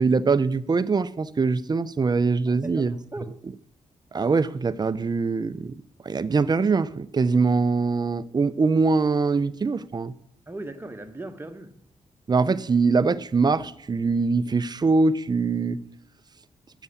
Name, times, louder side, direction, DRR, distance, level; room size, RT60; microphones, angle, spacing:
voice 1, 0.0-3.0 4.1-10.1 12.3-15.8, right 4 dB, 35° right, 0.6 m, -23 dB
voice 2, 2.5-3.3 10.5-11.7, right 2 dB, 20° right, 1.3 m, -38 dB
8.1 x 7.1 x 8.4 m
cardioid pair, 65°, 13 cm